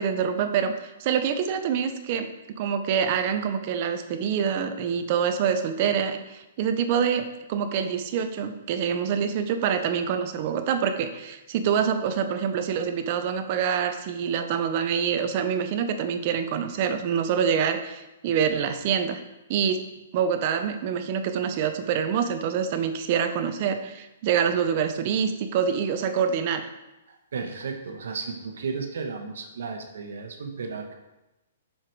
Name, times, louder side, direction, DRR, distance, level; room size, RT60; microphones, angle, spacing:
voice 1, 0.0-19.2 19.5-19.9 20.1-26.7, right 7 dB, 30° right, 8 dB, 0.6 m, -26 dB
voice 2, 27.3-30.9, right 5 dB, 65° right, 4 dB, 1.2 m, -34 dB
7.2 x 4.9 x 4.6 m, 1.0 s
hypercardioid pair, 175°, 0 cm